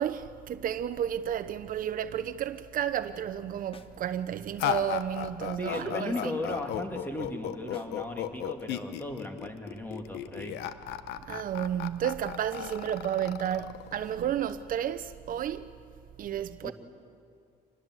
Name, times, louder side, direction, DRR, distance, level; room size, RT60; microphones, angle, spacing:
voice 1, 0.0-6.3 11.2-15.7 16.2-16.7, right 10 dB, 55° right, 0.8 m, -32 dB
acoustic drumkit single hits, 3.7-3.9 4.7-5.5 5.7-5.9 6.2-7.9 8.2-8.9, left 5 dB, 35° left, 1.3 m, -51 dB
sound 1, 4.6-14.5, left 10 dB, 80° left, 1.0 m, -35 dB
voice 2, 5.6-10.6 16.6-16.7, left 1 dB, 10° left, 2.7 m, -36 dB
26.0 x 20.5 x 7.8 m
cardioid pair, 110°, 17 cm